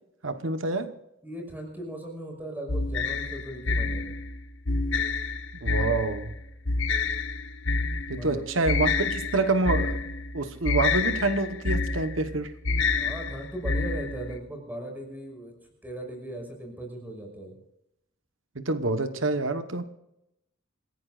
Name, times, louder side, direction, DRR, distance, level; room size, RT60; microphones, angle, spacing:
voice 1, 0.2-0.9 5.6-6.3 8.1-10.0 10.3-12.5 18.5-19.9, right 3 dB, 75° right, 9 dB, 1.2 m, -27 dB
voice 2, 1.2-4.2 8.2-8.6 12.9-15.5 15.8-17.6, right 1 dB, 10° right, 3 dB, 5.7 m, -38 dB
sound 1, 2.7-14.4, left 4 dB, 70° left, 1.3 m, -28 dB
27.5 x 16.0 x 2.5 m, 0.85 s
head